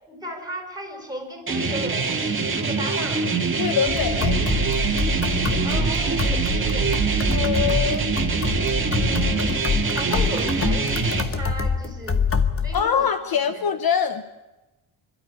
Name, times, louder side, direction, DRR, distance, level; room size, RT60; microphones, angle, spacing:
voice 1, 0.1-3.3 5.6-6.9 8.9-9.6 9.9-13.7, right 1 dB, 10° right, 4 dB, 4.9 m, -36 dB
sound 1, 1.5-11.2, right 4 dB, 25° right, 2.5 m, -24 dB
voice 2, 3.6-4.4 7.3-8.1 12.7-14.2, left 7 dB, 45° left, 10 dB, 1.0 m, -23 dB
sound 2, 3.9-12.8, left 5 dB, 25° left, 1.1 m, -26 dB
sound 3, 4.1-10.1, right 10 dB, 85° right, 1.6 m, -30 dB
27.0 x 12.5 x 9.8 m, 1.1 s
cardioid pair, 155°, 50 cm